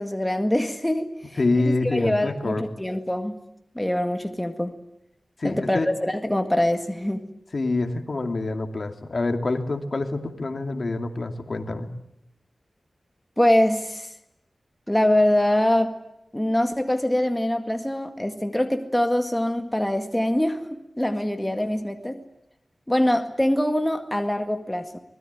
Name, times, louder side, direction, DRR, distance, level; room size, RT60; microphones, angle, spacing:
voice 1, 0.0-3.4 3.8-4.7 5.4-7.3 13.4-14.1 14.9-16.0 16.3-22.2 22.9-25.0, left 1 dB, 10° left, 6 dB, 1.9 m, -24 dB
voice 2, 1.4-2.6 5.4-5.9 7.5-11.9, left 2 dB, 55° left, 6 dB, 2.5 m, -26 dB
25.0 x 20.5 x 9.4 m, 0.79 s
wide cardioid pair, 95°, 0 cm